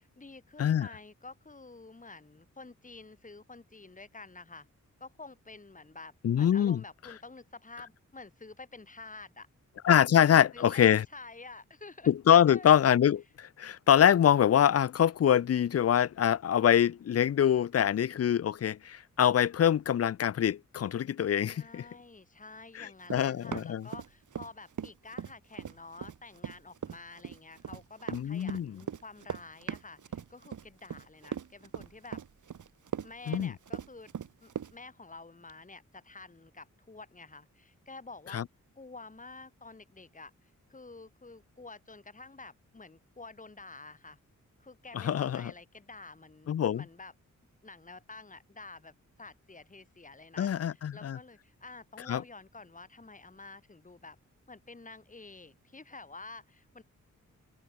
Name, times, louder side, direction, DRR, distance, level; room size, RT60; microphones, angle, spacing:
voice 1, 0.0-4.7 5.0-9.5 10.3-12.1 12.5-12.8 21.5-32.2 33.0-34.1 34.4-38.4 38.8-44.2 44.6-47.1 47.6-54.2 54.5-56.8, left 3 dB, 25° left, 2.5 m, -49 dB
voice 2, 6.2-6.8 9.8-11.0 12.1-21.8 22.8-23.9 28.1-28.8 33.3-33.5 38.3-38.4 44.9-45.4 46.5-46.8 50.4-51.2 52.1-52.2, left 9 dB, 50° left, 0.5 m, -24 dB
Run, 23.1-24.5 24.8-34.7, right 8 dB, 75° right, 1.5 m, -39 dB
open air
wide cardioid pair, 85°, 31 cm